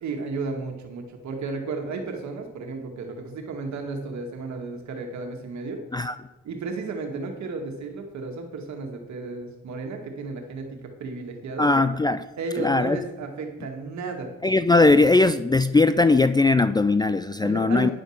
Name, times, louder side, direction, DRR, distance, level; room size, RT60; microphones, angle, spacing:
voice 1, 0.0-5.8 6.4-11.7 12.4-14.3 17.4-17.9, right 3 dB, 65° right, 3 dB, 2.0 m, -33 dB
voice 2, 11.6-12.2 12.6-13.0 14.4-17.9, left 3 dB, 15° left, 12 dB, 0.3 m, -19 dB
10.0 x 5.3 x 6.5 m, 1.1 s
cardioid pair, 90°, 30 cm